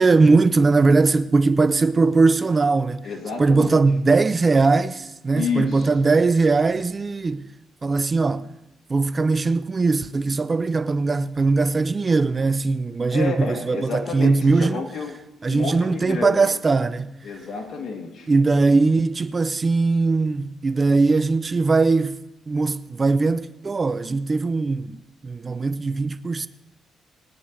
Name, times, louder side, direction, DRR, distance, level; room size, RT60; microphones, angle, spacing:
voice 1, 0.0-3.1 3.4-7.5 7.8-8.5 8.9-14.8 15.4-17.1 18.3-22.2 22.5-26.5, right 3 dB, 30° right, 0.5 m, -20 dB
voice 2, 3.0-3.8 5.3-5.9 13.1-15.1 15.5-16.6 17.2-18.3, left 5 dB, 65° left, 2.5 m, -30 dB
21.5 x 9.6 x 3.2 m
cardioid pair, 90°, 0 cm